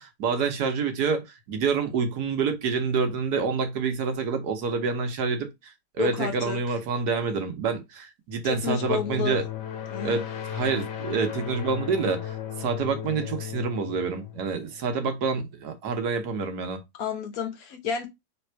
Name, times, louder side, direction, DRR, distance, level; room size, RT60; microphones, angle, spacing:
voice 1, 0.0-9.4 10.0-16.8, right 5 dB, 70° right, 1.4 m, -27 dB
voice 2, 6.0-6.6 8.4-9.4 9.9-10.2 17.0-18.1, left 7 dB, 65° left, 1.1 m, -30 dB
sound 1, 8.5-15.2, left 11 dB, 80° left, 1.3 m, -36 dB
3.6 x 3.3 x 4.4 m
omnidirectional pair, 1.8 m